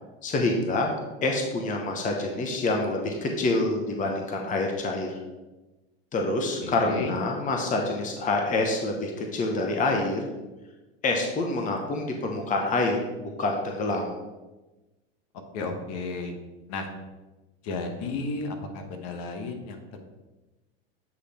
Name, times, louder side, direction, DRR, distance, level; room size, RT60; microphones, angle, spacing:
voice 1, 0.2-0.9 1.2-5.2 6.1-10.3 11.0-14.1, left 2 dB, 25° left, 2 dB, 0.9 m, -27 dB
voice 2, 6.6-7.1 15.5-16.3 16.7-16.9 17.6-20.0, left 3 dB, 55° left, 5 dB, 1.2 m, -33 dB
8.3 x 3.3 x 4.3 m, 1.1 s
hypercardioid pair, 100°, 31 cm